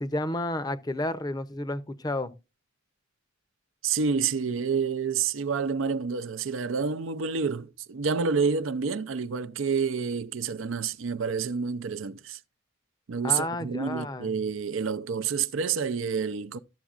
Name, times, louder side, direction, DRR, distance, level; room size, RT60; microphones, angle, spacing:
voice 1, 0.0-2.3 13.2-14.4, left 1 dB, 20° left, 0.6 m, -31 dB
voice 2, 3.8-12.4 13.1-16.6, right 5 dB, 75° right, 0.5 m, -28 dB
12.5 x 7.0 x 2.4 m
head